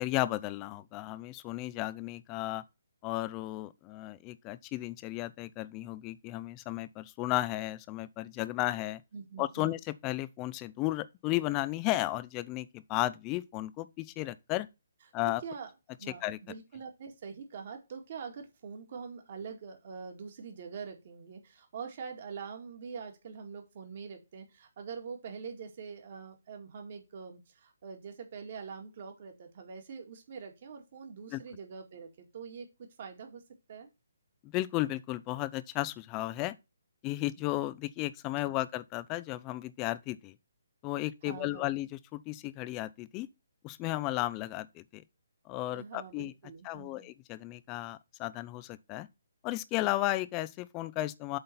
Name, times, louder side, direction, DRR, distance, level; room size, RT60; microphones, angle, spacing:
voice 1, 0.0-2.6 3.0-9.0 9.4-14.7 15.1-15.4 16.2-16.4 31.3-31.4 34.4-36.6 37.0-40.4 40.8-43.3 43.6-45.0 45.5-46.3 46.6-49.1 49.4-51.4, left 17 dB, 25° left, 0.5 m, -34 dB
voice 2, 9.1-9.8 15.2-15.7 16.0-33.4 33.7-33.9 38.3-38.6 41.2-41.8 45.7-47.1, right 6 dB, 50° right, 2.1 m, -44 dB
7.8 x 3.9 x 5.8 m
hypercardioid pair, 145°, 0 cm